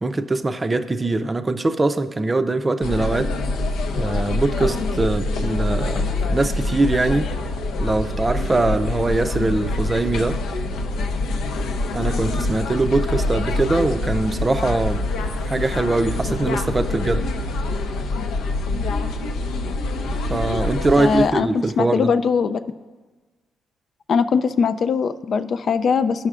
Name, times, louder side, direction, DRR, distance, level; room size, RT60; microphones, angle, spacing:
voice 1, 0.0-3.3 3.9-7.3 7.8-10.4 11.9-15.0 15.4-17.3 20.3-22.1, right 2 dB, 25° right, 9 dB, 0.5 m, -22 dB
sound 1, 2.8-21.3, left 2 dB, 85° left, 0.6 m, -25 dB
voice 2, 21.0-22.6 24.1-26.3, left 6 dB, 55° left, 10 dB, 0.3 m, -21 dB
15.5 x 5.6 x 2.4 m, 1.3 s
cardioid pair, 90°, 0 cm